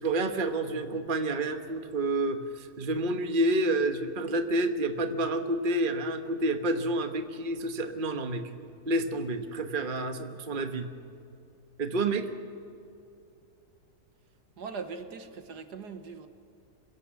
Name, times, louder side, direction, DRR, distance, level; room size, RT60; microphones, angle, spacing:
voice 1, 0.0-8.4 8.9-10.9 11.8-12.3, right 2 dB, 35° right, 7 dB, 1.3 m, -29 dB
voice 2, 14.6-16.3, right 5 dB, 75° right, 8 dB, 1.9 m, -40 dB
26.5 x 16.5 x 7.2 m, 2.6 s
omnidirectional pair, 1.8 m